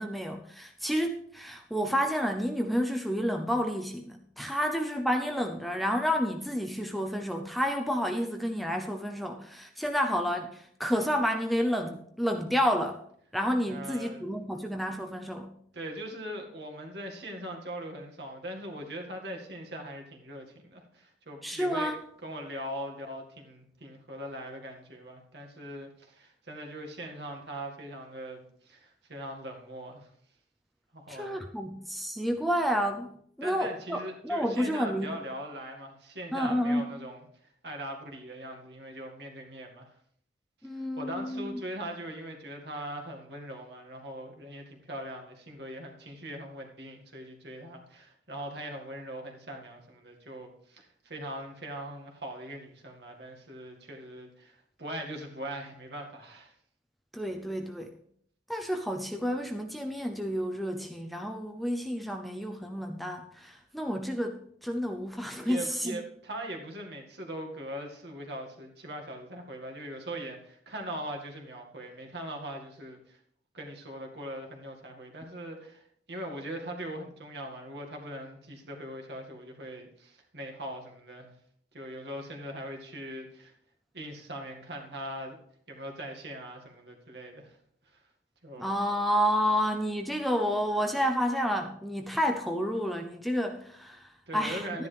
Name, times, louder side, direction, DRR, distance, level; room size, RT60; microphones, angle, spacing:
voice 1, 0.0-13.0 13.3-15.5 21.4-22.0 31.1-35.2 36.3-36.9 40.6-41.6 57.1-57.9 58.5-66.0 88.6-94.9, equal, ahead, 4 dB, 0.6 m, -30 dB
voice 2, 13.7-14.2 15.7-21.9 22.2-30.1 30.9-31.4 33.4-37.3 37.6-39.9 40.7-56.5 65.4-73.2 73.5-81.3 81.7-83.5 83.9-85.4 85.7-87.6 87.9-88.0 88.4-88.7 94.3-94.9, right 1 dB, 60° right, 2 dB, 2.0 m, -41 dB
12.5 x 10.5 x 3.4 m, 0.65 s
head